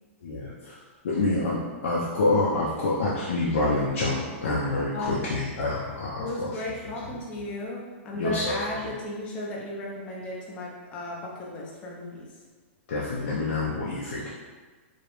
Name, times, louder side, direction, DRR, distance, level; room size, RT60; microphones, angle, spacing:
voice 1, 0.2-0.8 1.0-6.5 8.1-8.6 8.8-8.9 12.9-14.3, left 2 dB, 80° left, -6 dB, 0.4 m, -27 dB
voice 2, 4.9-5.5 6.2-12.3, left 2 dB, 15° left, -4 dB, 0.3 m, -35 dB
2.3 x 2.0 x 2.9 m, 1.4 s
supercardioid pair, 170°, 7 cm